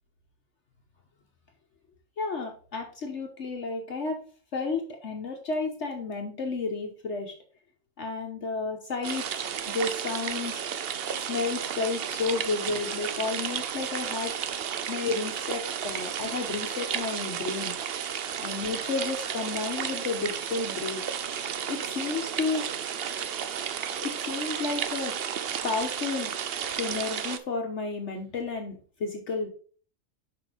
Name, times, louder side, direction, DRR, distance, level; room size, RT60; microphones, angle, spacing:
voice 1, 2.2-4.2 4.5-7.3 8.0-10.6 11.2-14.3 14.9-17.7 18.4-21.0 21.7-22.7 23.2-23.3 24.0-25.1 25.6-26.3 26.7-29.5, left 4 dB, 60° left, 3 dB, 1.3 m, -32 dB
sound 1, 9.0-27.4, right 8 dB, 55° right, 0.7 m, -33 dB
6.2 x 5.2 x 5.0 m, 0.42 s
omnidirectional pair, 1.4 m